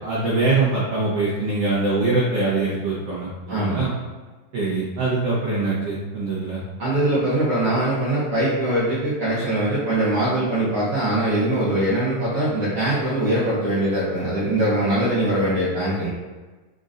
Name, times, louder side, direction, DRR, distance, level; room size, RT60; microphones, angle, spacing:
voice 1, 0.0-3.9 4.5-6.6, right 3 dB, 85° right, -7 dB, 1.3 m, -23 dB
voice 2, 3.5-3.8 6.8-16.1, right 1 dB, 65° right, -10 dB, 1.5 m, -22 dB
5.3 x 3.8 x 2.5 m, 1.3 s
omnidirectional pair, 4.0 m